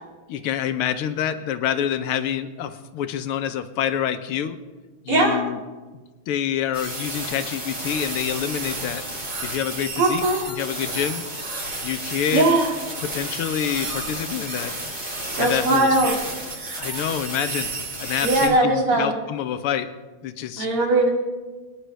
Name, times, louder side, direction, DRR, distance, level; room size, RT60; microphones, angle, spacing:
voice 1, 0.3-4.6 5.0-5.6 6.3-9.0 9.4-11.2 11.8-12.5 13.0-14.7 15.4-16.2 16.8-17.7 18.0-19.9 20.2-20.7, left 9 dB, 90° left, 10 dB, 1.7 m, -27 dB
voice 2, 5.1-5.4 10.0-10.4 12.3-12.7 15.4-16.1 18.2-19.1 20.6-21.1, right 2 dB, 80° right, -1 dB, 3.4 m, -19 dB
sound 1, 6.7-18.5, right 2 dB, 45° right, 4.6 m, -31 dB
23.0 x 10.0 x 3.4 m, 1.3 s
omnidirectional pair, 2.4 m